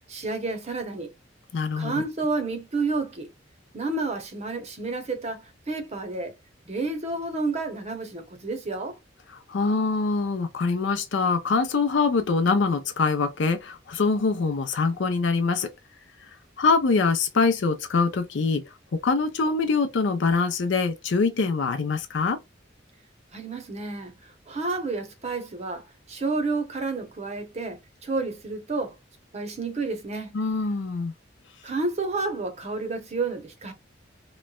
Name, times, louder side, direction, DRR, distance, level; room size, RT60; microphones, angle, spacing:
voice 1, 0.1-1.1 1.8-3.3 3.7-6.3 6.7-9.0 23.3-24.2 24.5-29.0 29.3-30.3 31.6-33.7, right 3 dB, 35° right, 0.7 m, -30 dB
voice 2, 1.5-2.0 9.5-15.7 16.6-18.6 18.9-22.4 30.3-31.1, left 4 dB, 70° left, 0.5 m, -24 dB
3.0 x 2.1 x 2.2 m
head